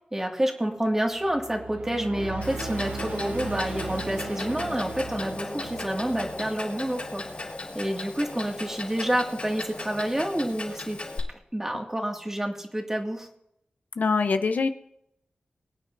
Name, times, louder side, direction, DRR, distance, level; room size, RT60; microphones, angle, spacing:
voice 1, 0.1-11.0 11.5-13.3, right 1 dB, 15° right, 2 dB, 2.1 m, -28 dB
sound 1, 1.1-7.7, right 3 dB, 55° right, 1.1 m, -38 dB
Clock, 2.4-11.2, left 2 dB, 45° left, 4.0 m, -38 dB
sound 2, 2.9-10.6, left 1 dB, 30° left, 2.7 m, -43 dB
voice 2, 14.0-14.7, left 4 dB, 65° left, 8 dB, 0.7 m, -23 dB
23.5 x 9.8 x 2.6 m, 0.76 s
wide cardioid pair, 110°, 3 cm